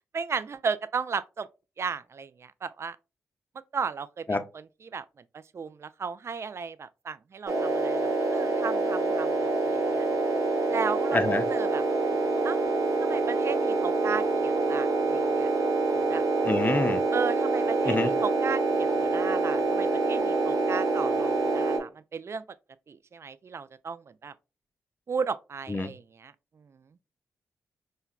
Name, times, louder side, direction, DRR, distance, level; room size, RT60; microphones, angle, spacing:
voice 1, 0.1-1.5 1.8-3.0 3.7-5.1 5.3-10.1 10.7-11.2 11.5-11.8 12.4-12.6 13.0-15.5 16.1-16.2 17.1-22.4 22.9-24.3 25.1-26.3, right 5 dB, 45° right, 0.3 m, -35 dB
sound 1, 7.5-21.8, right 3 dB, 60° right, 1.0 m, -26 dB
voice 2, 11.1-11.4 16.4-17.0 17.8-18.1 25.7-25.9, left 3 dB, 30° left, 0.5 m, -26 dB
4.5 x 2.1 x 2.2 m
supercardioid pair, 40°, 7 cm